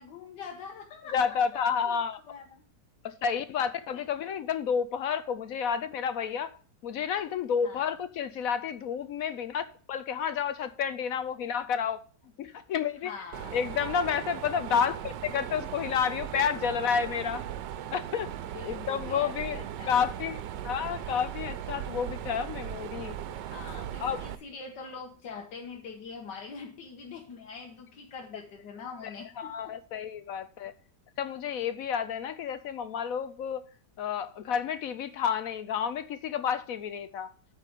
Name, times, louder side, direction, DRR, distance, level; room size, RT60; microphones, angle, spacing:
voice 1, 0.0-1.3 1.8-2.0 2.2-2.6 3.9-4.1 7.6-7.9 13.0-13.6 18.5-20.4 23.5-29.7, left 5 dB, 85° left, 1.7 m, -44 dB
voice 2, 1.1-2.2 3.0-6.5 6.8-9.6 9.9-12.0 12.4-13.1 13.5-17.4 17.9-18.3 18.6-20.4 20.6-23.2 24.0-24.2 29.4-30.7 31.2-33.6 34.0-37.3, left 7 dB, 65° left, 0.9 m, -30 dB
Mechanisms, 13.3-24.4, right 10 dB, 85° right, 1.3 m, -38 dB
8.7 x 4.2 x 7.2 m
omnidirectional pair, 1.8 m